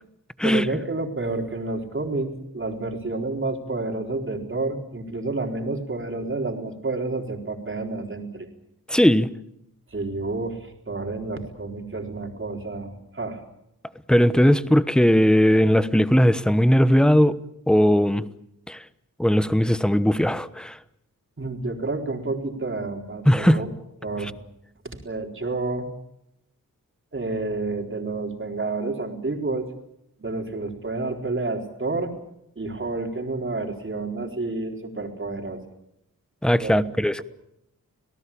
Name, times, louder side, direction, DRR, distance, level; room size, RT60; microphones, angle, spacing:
voice 1, 0.4-8.5 9.9-13.4 21.4-23.7 24.0-24.3 24.8-25.9 27.1-29.7 30.2-32.1 32.6-35.6 36.6-36.8, right 3 dB, 35° right, 4.1 m, -29 dB
voice 2, 8.9-9.3 14.1-17.4 17.7-18.3 18.7-18.8 19.2-20.8 23.3-23.6 36.4-37.2, equal, ahead, 1.0 m, -18 dB
27.0 x 18.0 x 8.6 m
wide cardioid pair, 95°, 34 cm